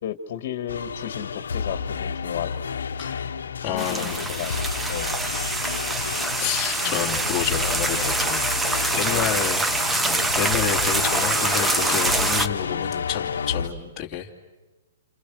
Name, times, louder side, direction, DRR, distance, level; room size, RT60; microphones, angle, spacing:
voice 1, 0.0-2.7 3.6-4.6 4.9-5.1 9.1-9.4, left 10 dB, 55° left, 9 dB, 2.0 m, -34 dB
sound 1, 0.7-13.7, left 6 dB, 90° left, 1.2 m, -31 dB
voice 2, 3.6-4.2 6.4-8.4 8.9-9.6 9.9-14.3, left 10 dB, 20° left, -3 dB, 2.9 m, -29 dB
sound 2, 3.8-12.5, right 2 dB, 5° right, 0.9 m, -25 dB
29.0 x 28.0 x 6.4 m, 1.2 s
hypercardioid pair, 140°, 0 cm